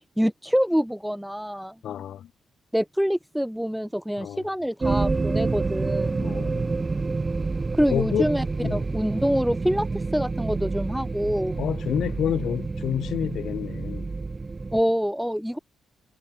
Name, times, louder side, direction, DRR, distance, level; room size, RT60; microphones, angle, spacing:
voice 1, 0.2-1.7 2.7-6.3 7.7-8.4 8.7-11.6 14.7-15.6, equal, ahead, 0.9 m, -25 dB
voice 2, 1.8-2.3 4.2-4.5 6.2-6.7 7.9-8.3 8.6-8.8 11.6-14.1, left 10 dB, 75° left, 1.9 m, -29 dB
sound 1, 4.8-14.8, right 3 dB, 25° right, 1.1 m, -28 dB
cardioid pair, 105°, 0 cm